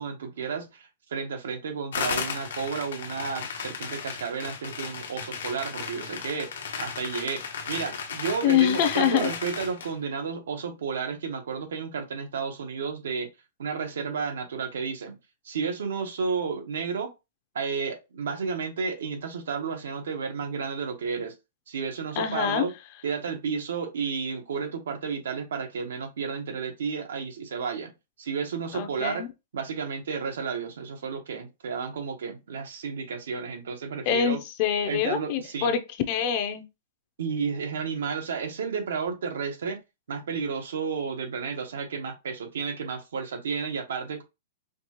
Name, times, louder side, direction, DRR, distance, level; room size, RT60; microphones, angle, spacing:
voice 1, 0.0-6.5 6.8-13.3 13.6-15.2 15.4-17.1 17.5-21.3 21.7-22.7 23.0-27.9 28.2-29.2 29.5-34.4 34.9-35.7 37.2-39.8 40.1-44.2, right 5 dB, 85° right, 1.1 m, -32 dB
sound 1, 1.9-9.9, left 6 dB, 90° left, 1.0 m, -35 dB
voice 2, 8.4-9.3 22.2-22.7 28.7-29.3 34.1-35.8 36.1-36.7, left 9 dB, 40° left, 0.5 m, -25 dB
5.1 x 2.4 x 3.0 m
hypercardioid pair, 160°, 0 cm